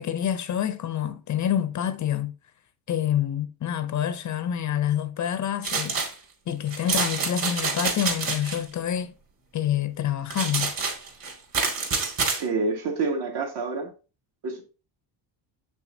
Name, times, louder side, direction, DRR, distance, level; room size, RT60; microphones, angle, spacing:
voice 1, 0.0-2.3 2.9-6.0 6.5-9.1 9.5-10.7, left 10 dB, 40° left, 0.5 m, -27 dB
sound 1, 5.6-6.1 6.7-8.6 10.3-12.4, right 4 dB, 45° right, 2.3 m, -27 dB
voice 2, 12.4-13.9 14.4-14.6, right 4 dB, 65° right, 2.0 m, -27 dB
7.3 x 6.0 x 2.6 m
cardioid pair, 135°, 44 cm